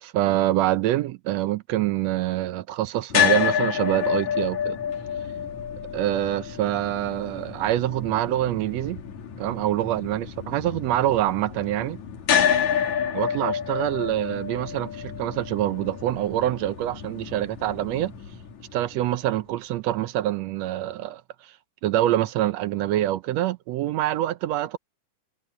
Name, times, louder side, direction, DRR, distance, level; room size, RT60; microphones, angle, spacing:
voice 1, 0.0-4.8 5.9-9.0 9.4-12.0 13.1-18.1 18.7-21.5 21.8-24.8, right 14 dB, 80° right, 1.5 m, -25 dB
sound 1, 3.1-19.2, left 8 dB, 65° left, 3.4 m, -29 dB
omnidirectional pair, 3.8 m